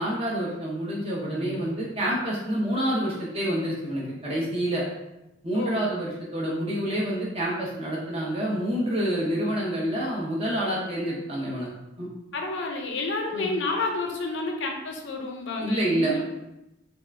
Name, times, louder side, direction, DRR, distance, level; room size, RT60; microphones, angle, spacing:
voice 1, 0.0-4.8 5.4-11.7 12.0-12.1 13.3-13.5 15.6-16.2, right 1 dB, 30° right, -5 dB, 0.6 m, -27 dB
voice 2, 5.5-5.9 12.3-16.2, left 3 dB, 65° left, 2 dB, 0.5 m, -30 dB
3.5 x 2.4 x 3.3 m, 0.91 s
head